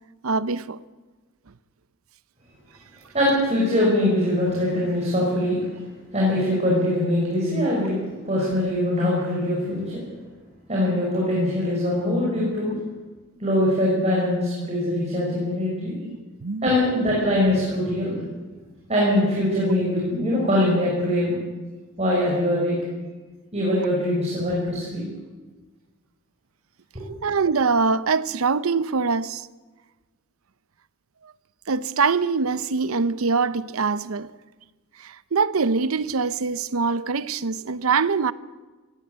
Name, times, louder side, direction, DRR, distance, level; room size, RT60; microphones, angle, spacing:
voice 1, 0.2-0.8 16.0-16.7 27.2-29.5 31.2-31.3 31.7-34.3 35.0-38.3, right 4 dB, 80° right, 0.7 m, -23 dB
voice 2, 3.1-5.7 6.1-8.0 8.3-10.0 10.7-12.7 13.4-16.0 16.6-18.2 18.9-21.4 22.0-22.8 23.5-25.0 26.9-27.1, left 1 dB, 30° right, 6.0 m, -22 dB
19.0 x 17.5 x 8.1 m
head